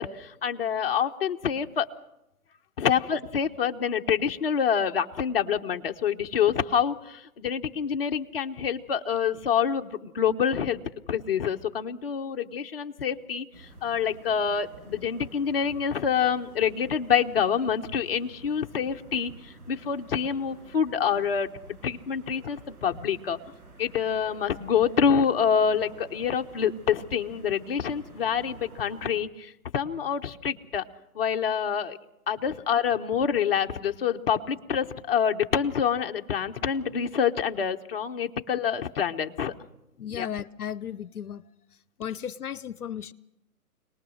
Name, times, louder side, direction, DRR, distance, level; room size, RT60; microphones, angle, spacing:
voice 1, 0.0-1.9 2.8-10.8 11.1-13.5 13.8-21.5 21.8-23.4 23.8-30.9 31.1-32.0 32.3-39.5 40.1-40.3, left 7 dB, 40° left, 1.0 m, -26 dB
sound 1, 13.5-29.2, right 2 dB, 75° right, 7.9 m, -50 dB
voice 2, 40.0-41.4 42.0-43.1, left 9 dB, 75° left, 0.8 m, -35 dB
26.0 x 19.5 x 6.4 m
hypercardioid pair, 160°, 45 cm